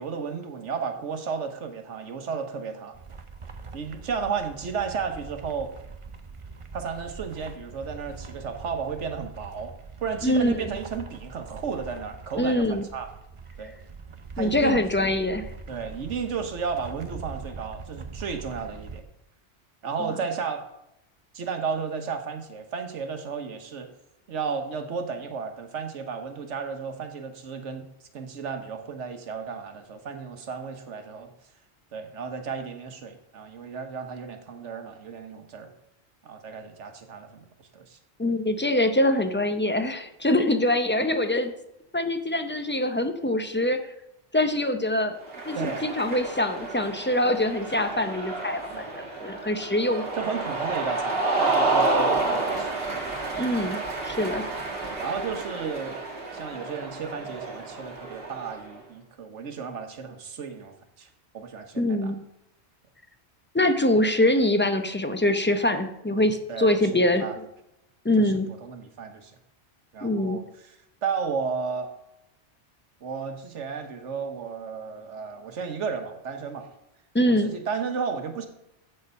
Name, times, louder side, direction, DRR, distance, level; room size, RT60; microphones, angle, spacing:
voice 1, 0.0-2.9 3.7-5.7 6.7-9.7 10.0-13.1 13.6-13.8 14.4-14.8 15.7-19.0 19.8-20.6 21.3-23.9 24.3-27.9 28.1-31.3 31.9-35.7 36.2-37.4 37.7-38.0 45.5-45.8 48.7-49.0 50.2-52.8 53.2-53.3 54.8-56.0 56.3-61.1 61.3-62.1 66.5-67.4 68.2-68.3 68.6-69.3 69.9-70.7 71.0-71.9 73.0-76.7 77.3-78.5, right 6 dB, 85° right, 6 dB, 1.3 m, -33 dB
sound 1, 2.9-19.0, right 4 dB, 35° right, 0.5 m, -43 dB
voice 2, 10.2-10.7 12.4-12.9 14.4-15.5 38.2-41.5 41.9-43.8 44.3-45.2 45.5-48.6 48.9-50.0 53.4-54.5 61.8-62.2 63.5-67.3 68.0-68.5 70.0-70.4 77.1-77.5, left 1 dB, 15° left, 7 dB, 0.4 m, -24 dB
Cheering, 45.2-58.7, right 3 dB, 55° right, 1.8 m, -30 dB
7.9 x 6.6 x 5.3 m, 0.84 s
omnidirectional pair, 1.2 m